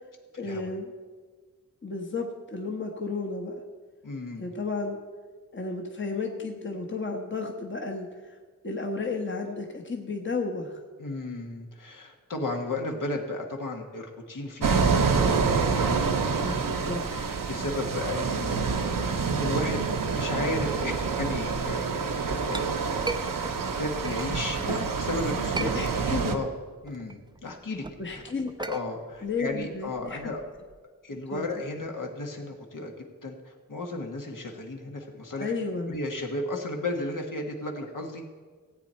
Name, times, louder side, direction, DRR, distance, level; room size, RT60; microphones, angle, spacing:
voice 1, 0.4-0.9 1.8-3.6 4.4-5.0 5.5-8.3 8.6-10.8 16.4-17.1 24.7-24.9 25.6-26.4 28.0-28.7 29.2-30.2 31.3-31.4 35.4-36.0, left 3 dB, 35° left, 2 dB, 1.1 m, -33 dB
voice 2, 4.0-4.4 11.0-16.4 17.1-19.9 20.1-23.4 23.7-24.6 25.0-26.5 26.8-28.2 28.6-30.4 31.0-35.5 35.9-38.4, left 2 dB, 75° left, 1 dB, 1.6 m, -34 dB
sound 1, 14.6-26.4, right 5 dB, 85° right, 0.9 m, -27 dB
Chink clink, 22.4-24.9 25.3-26.4 26.7-30.8, right 3 dB, 15° right, 0.4 m, -39 dB
16.5 x 8.6 x 4.4 m, 1.5 s
wide cardioid pair, 90°, 32 cm